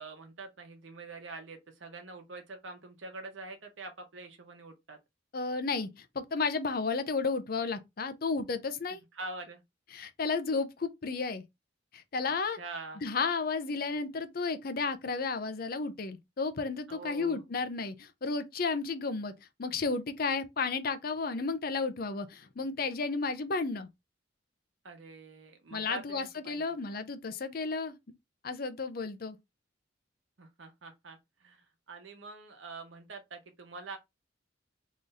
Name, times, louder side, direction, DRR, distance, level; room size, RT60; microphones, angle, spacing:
voice 1, 0.0-5.0 8.9-9.6 12.2-12.3 12.6-13.0 16.9-17.4 24.8-26.6 26.9-27.0 30.4-34.0, right 3 dB, 90° right, 0.9 m, -45 dB
voice 2, 5.3-9.0 9.9-11.4 11.9-12.6 13.0-19.3 19.6-23.9 25.7-28.0 28.4-29.4, left 4 dB, 50° left, 0.6 m, -33 dB
3.1 x 2.6 x 3.8 m
head